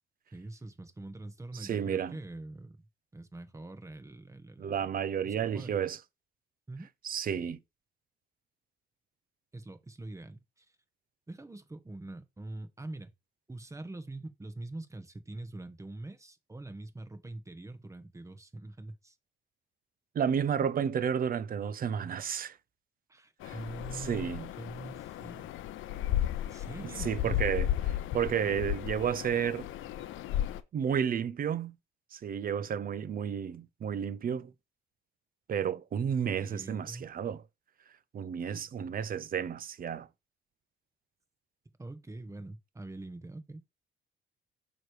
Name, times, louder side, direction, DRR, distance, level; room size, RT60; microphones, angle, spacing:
voice 1, 0.3-2.9 3.1-4.9 5.2-5.7 6.7-6.9 9.5-10.7 11.3-13.1 13.5-19.2 23.1-25.5 26.5-27.4 36.4-37.1 41.8-43.7, right 2 dB, 15° right, 1.0 m, -44 dB
voice 2, 1.5-2.2 4.6-6.0 7.0-7.6 20.1-22.6 23.4-23.6 23.9-24.5 26.8-29.7 30.7-31.8 32.1-34.5 35.5-37.4 38.1-40.1, right 8 dB, 45° right, 0.6 m, -32 dB
sound 1, 23.4-30.6, left 12 dB, 80° left, 0.6 m, -34 dB
6.3 x 3.1 x 4.7 m
cardioid pair, 90°, 20 cm